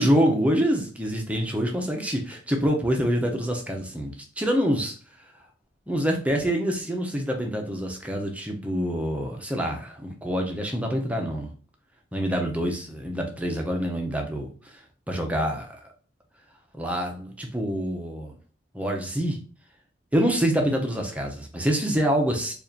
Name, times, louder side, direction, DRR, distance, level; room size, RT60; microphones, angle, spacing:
voice 1, 0.0-4.9 5.9-11.5 12.1-14.7 15.1-15.8 16.7-18.3 18.7-19.4 20.1-22.5, equal, 10° right, 2 dB, 0.7 m, -26 dB
4.7 x 2.5 x 2.7 m, 0.38 s
head